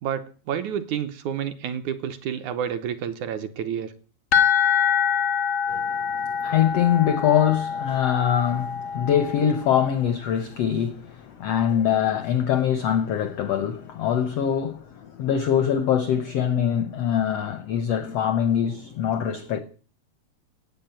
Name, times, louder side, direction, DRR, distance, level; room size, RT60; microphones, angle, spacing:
voice 1, 0.0-3.9, right 8 dB, 70° right, 2.0 m, -29 dB
sound 1, 4.3-9.9, left 7 dB, 55° left, 0.8 m, -25 dB
voice 2, 5.7-19.6, left 9 dB, 80° left, 1.4 m, -23 dB
16.5 x 8.5 x 9.0 m
omnidirectional pair, 4.2 m